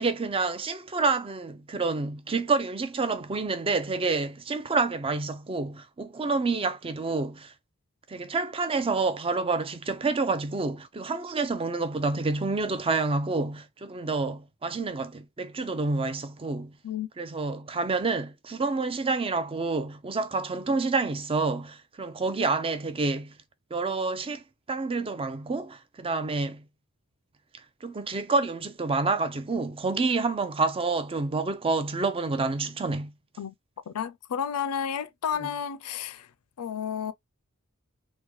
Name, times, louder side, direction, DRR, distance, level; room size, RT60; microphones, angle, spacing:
voice 1, 0.0-7.5 8.1-16.7 17.2-23.3 23.7-24.4 24.7-26.6 27.8-33.1 35.4-35.5, right 3 dB, 25° right, 0.5 m, -28 dB
voice 2, 33.9-36.3 36.6-37.1, left 8 dB, 90° left, 0.4 m, -31 dB
3.6 x 2.2 x 3.1 m
head